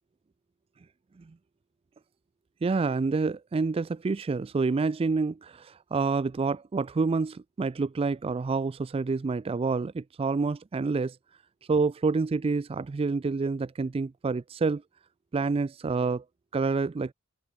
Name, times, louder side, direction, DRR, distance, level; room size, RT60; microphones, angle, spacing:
voice 1, 2.6-11.2 11.7-14.8 15.3-16.2 16.5-17.1, right 4 dB, 25° right, 0.3 m, -28 dB
head